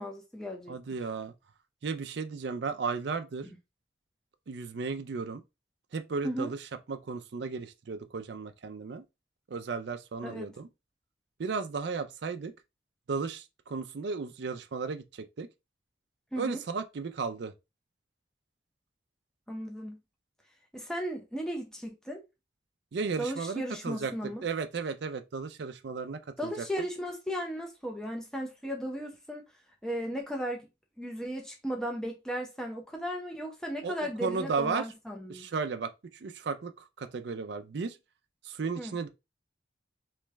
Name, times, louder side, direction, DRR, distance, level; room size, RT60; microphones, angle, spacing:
voice 1, 0.0-0.8 3.4-3.6 6.2-6.5 10.2-10.5 16.3-16.6 19.5-20.0 20.7-22.2 23.2-24.5 26.4-29.4 29.8-30.7 31.0-35.5 38.8-38.9, equal, 5° left, 0.6 m, -36 dB
voice 2, 0.7-1.3 1.8-3.5 4.5-5.4 5.9-9.0 9.5-10.7 11.4-12.5 13.1-15.5 16.4-17.5 22.9-26.7 33.8-34.8 35.3-35.9 36.2-38.0 38.4-39.1, right 4 dB, 65° right, 0.4 m, -34 dB
3.2 x 3.1 x 3.3 m
head